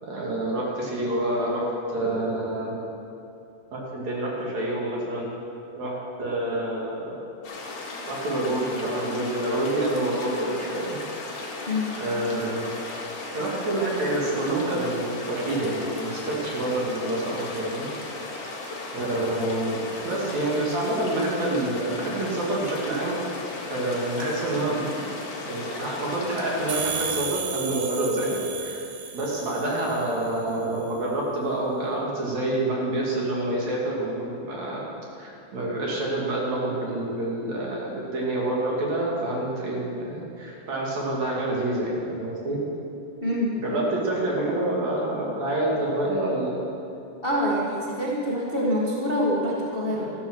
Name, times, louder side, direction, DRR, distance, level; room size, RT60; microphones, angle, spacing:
voice 1, 0.0-2.7 3.7-5.3 5.8-7.2 8.1-11.0 12.0-12.7 13.3-17.9 18.9-23.2 23.7-25.0 25.4-28.8 29.1-34.9 35.2-42.6 43.5-46.6 50.0-50.1, right 1 dB, 60° right, -4 dB, 3.9 m, -27 dB
sound 1, 7.4-27.1, left 2 dB, 55° left, 3.2 m, -36 dB
voice 2, 11.7-12.0 43.2-43.6 47.2-50.1, equal, 30° left, -4 dB, 1.2 m, -25 dB
sound 2, 26.7-30.3, right 7 dB, 85° right, 2.8 m, -33 dB
13.5 x 13.0 x 6.3 m, 2.7 s
omnidirectional pair, 3.7 m